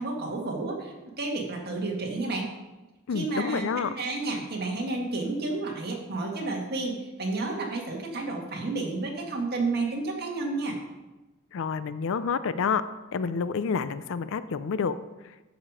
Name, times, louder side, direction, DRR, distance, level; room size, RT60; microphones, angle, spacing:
voice 1, 0.0-2.5 3.1-10.8, right 3 dB, 45° right, 0 dB, 1.9 m, -31 dB
voice 2, 3.1-3.9 11.5-12.8 13.1-15.0, left 5 dB, 60° left, 14 dB, 0.4 m, -28 dB
13.0 x 5.0 x 4.9 m, 1.1 s
head